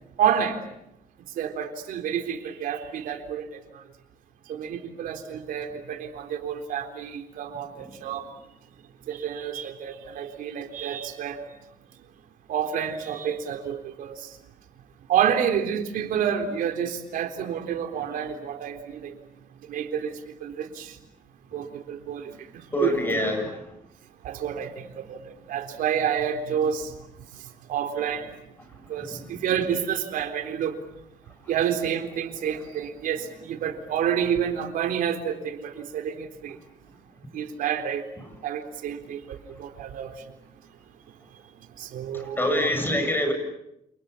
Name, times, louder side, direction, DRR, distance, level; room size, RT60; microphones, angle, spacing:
voice 1, 0.2-0.6 1.4-3.8 4.5-8.3 9.1-11.4 12.5-14.3 15.1-19.1 19.7-21.0 21.5-23.2 24.2-26.9 27.7-28.4 28.9-30.8 31.5-36.6 37.3-38.1 38.4-40.3 41.8-42.7, right 8 dB, 90° right, 5 dB, 3.8 m, -29 dB
voice 2, 22.7-23.6 29.1-29.2 42.1-43.3, left 1 dB, 15° left, 6 dB, 8.0 m, -25 dB
29.0 x 29.0 x 7.1 m, 0.83 s
cardioid pair, 125°, 14 cm